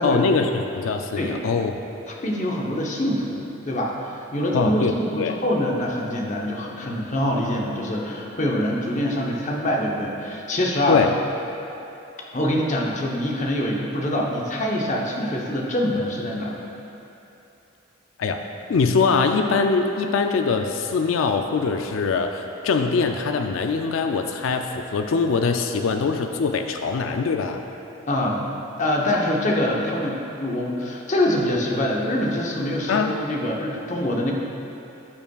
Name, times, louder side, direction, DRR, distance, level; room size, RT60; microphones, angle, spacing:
voice 1, 0.0-1.8 4.5-5.4 10.9-11.2 18.2-27.6 32.9-33.1, left 4 dB, 80° left, 5 dB, 0.4 m, -23 dB
voice 2, 2.1-11.0 12.3-16.6 28.1-28.4 28.8-34.3, left 1 dB, 35° left, -2 dB, 0.8 m, -25 dB
13.5 x 5.6 x 2.3 m, 2.9 s
head